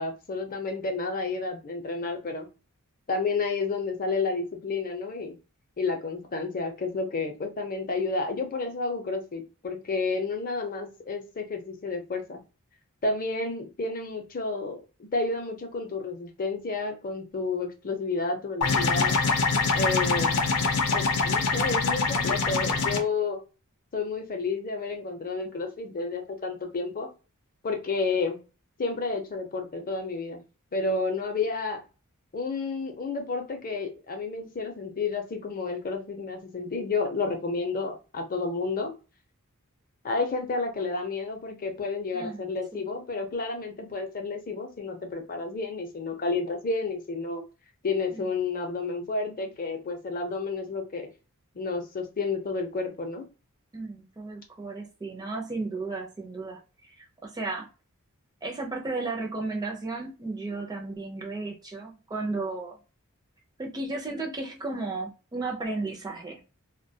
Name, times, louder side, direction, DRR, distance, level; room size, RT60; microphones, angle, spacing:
voice 1, 0.0-2.5 3.1-5.3 5.8-12.4 13.0-19.2 19.7-20.3 20.9-23.4 23.9-27.1 27.6-28.4 28.8-30.4 30.7-31.8 32.3-38.9 40.0-47.4 47.8-51.1 51.5-53.2, left 3 dB, 40° left, 0.6 m, -31 dB
sound 1, 18.6-23.0, left 4 dB, 85° left, 0.6 m, -24 dB
voice 2, 53.7-57.7 58.4-62.8 63.6-66.4, right 3 dB, 20° right, 0.4 m, -34 dB
2.3 x 2.2 x 2.7 m
head